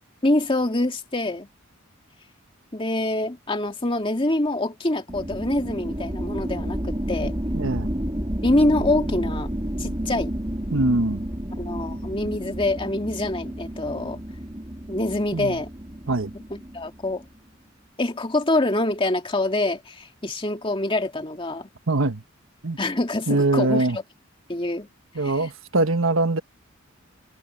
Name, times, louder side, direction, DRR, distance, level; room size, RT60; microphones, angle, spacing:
voice 1, 0.2-1.5 2.7-7.3 8.4-9.5 9.8-10.3 11.6-14.2 14.9-15.7 16.7-17.2 18.0-21.7 22.8-24.0 24.5-24.9 25.2-25.5, left 2 dB, 25° left, 2.3 m, -25 dB
sound 1, 5.1-17.4, equal, 20° right, 3.5 m, -31 dB
voice 2, 7.5-7.9 10.7-11.2 15.3-15.6 16.1-16.3 21.9-22.2 22.6-22.8 23.3-24.0 25.1-26.4, right 2 dB, 75° right, 1.3 m, -22 dB
head